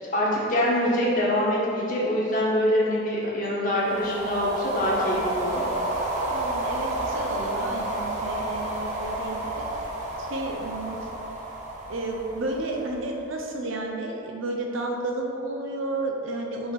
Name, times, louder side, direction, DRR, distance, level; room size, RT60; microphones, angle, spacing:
voice 1, 0.0-5.6, left 1 dB, 40° left, -6 dB, 1.4 m, -24 dB
sound 1, 3.7-13.2, right 1 dB, 35° right, 0.9 m, -31 dB
voice 2, 6.3-9.7 10.2-11.0 11.9-16.7, right 2 dB, 75° right, 1 dB, 0.8 m, -32 dB
5.8 x 3.7 x 5.8 m, 2.8 s
head